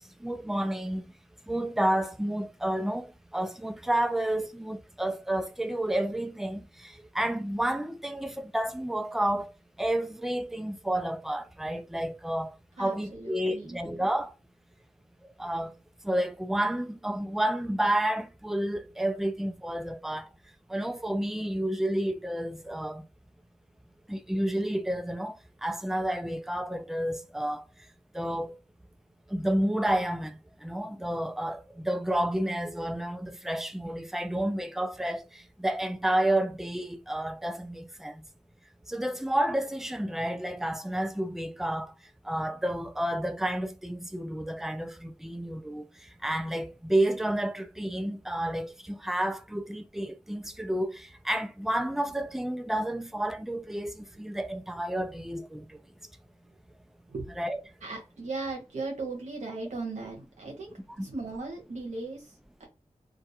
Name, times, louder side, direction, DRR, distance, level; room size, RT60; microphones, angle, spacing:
voice 1, 0.2-1.0 1.5-9.5 9.8-14.3 15.4-15.8 16.0-20.3 20.7-23.0 24.1-27.6 28.1-28.6 29.3-38.2 38.9-41.9 42.2-55.8 57.4-57.6, right 1 dB, 5° right, 0.3 m, -30 dB
voice 2, 12.8-13.8 54.1-54.2 57.1-57.2 57.8-62.7, right 3 dB, 80° right, 0.8 m, -37 dB
2.3 x 2.2 x 2.7 m
wide cardioid pair, 80°, 12 cm